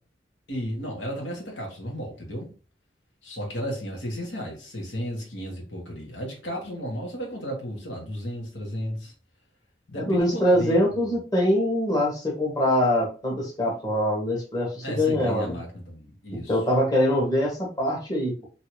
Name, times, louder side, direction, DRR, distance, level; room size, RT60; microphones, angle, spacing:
voice 1, 0.5-2.5 3.2-9.1 9.9-11.1 14.8-16.6, equal, 85° left, 1.4 m, -33 dB
voice 2, 9.9-15.5 16.3-18.3, left 1 dB, 20° left, 1.0 m, -23 dB
2.9 x 2.7 x 3.0 m
head